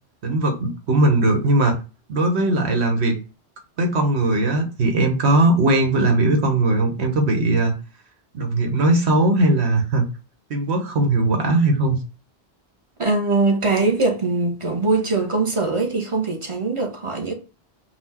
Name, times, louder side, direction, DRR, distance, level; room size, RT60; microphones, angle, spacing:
voice 1, 0.2-1.8 2.1-3.1 3.8-7.7 8.3-10.0 10.5-12.0, right 2 dB, 90° right, 1.3 m, -19 dB
voice 2, 13.0-17.3, right 3 dB, 30° right, 0.9 m, -21 dB
4.2 x 2.4 x 4.2 m
omnidirectional pair, 1.1 m